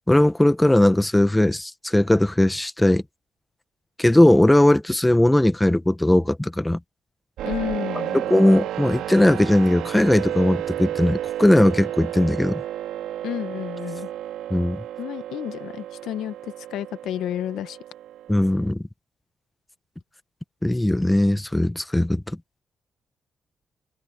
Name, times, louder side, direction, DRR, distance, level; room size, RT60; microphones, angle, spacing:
voice 1, 0.0-3.0 4.0-6.8 8.1-12.6 14.5-14.8 18.3-18.8 20.6-22.2, left 1 dB, 10° left, 1.4 m, -19 dB
voice 2, 7.4-8.2 13.2-14.1 15.0-17.8, left 12 dB, 80° left, 1.6 m, -31 dB
sound 1, 7.4-18.7, right 12 dB, 80° right, 5.1 m, -32 dB
hypercardioid pair, 45°, 0 cm